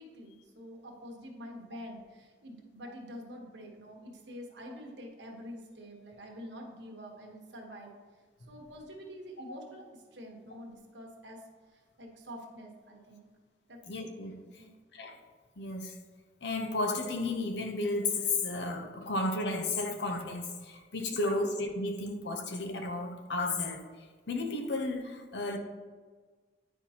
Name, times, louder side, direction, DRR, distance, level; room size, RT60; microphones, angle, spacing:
voice 1, 0.0-7.9 8.5-9.8 10.1-11.4 12.0-13.3 13.7-13.8 14.6-14.7 21.1-21.3, equal, 75° right, 1 dB, 1.2 m, -46 dB
voice 2, 13.8-14.3 14.9-15.2 15.6-16.0 16.4-23.8 24.3-25.6, left 2 dB, 70° left, 5 dB, 0.8 m, -33 dB
9.9 x 4.4 x 2.9 m, 1.4 s
head